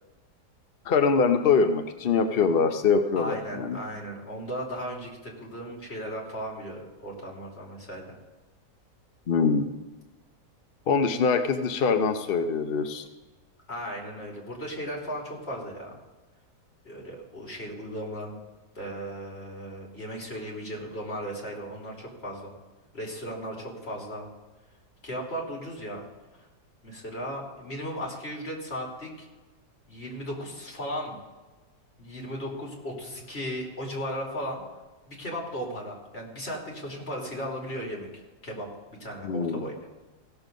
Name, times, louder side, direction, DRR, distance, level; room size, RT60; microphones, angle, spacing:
voice 1, 0.9-3.8 9.3-9.7 10.9-13.1 39.2-39.7, left 5 dB, 60° left, 7 dB, 0.5 m, -23 dB
voice 2, 3.1-8.2 13.7-16.0 16.8-18.4 18.7-22.5 22.9-24.3 25.0-26.0 26.8-29.3 29.9-31.2 32.0-34.6 35.1-38.7 39.0-39.9, equal, 35° left, -2 dB, 3.0 m, -36 dB
16.5 x 7.0 x 5.3 m, 1.2 s
omnidirectional pair, 1.9 m